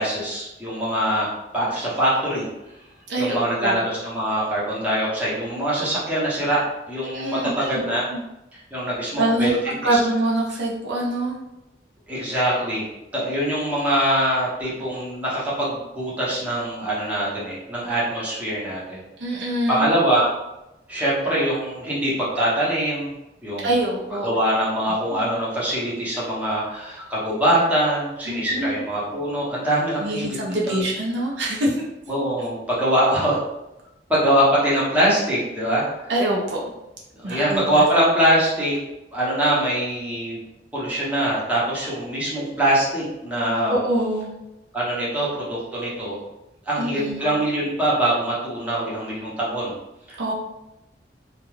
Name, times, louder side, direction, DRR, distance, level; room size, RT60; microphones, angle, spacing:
voice 1, 0.0-2.5 3.2-6.6 6.9-8.0 8.5-10.0 12.1-12.9 13.1-19.0 19.7-20.3 20.9-23.1 23.4-23.7 24.2-30.4 30.7-30.8 32.1-33.4 34.1-35.9 37.2-38.8 39.1-40.4 40.7-43.8 44.7-46.2 46.6-49.7 50.1-50.3, right 1 dB, 10° right, -8 dB, 0.9 m, -23 dB
voice 2, 3.1-3.8 7.0-8.2 9.2-11.4 19.2-19.9 23.6-24.3 28.3-28.8 30.0-31.9 36.1-36.7 37.2-37.8 43.7-44.3 46.8-47.2 50.2-50.3, right 1 dB, 75° right, -3 dB, 0.6 m, -24 dB
2.4 x 2.2 x 3.1 m, 0.93 s
head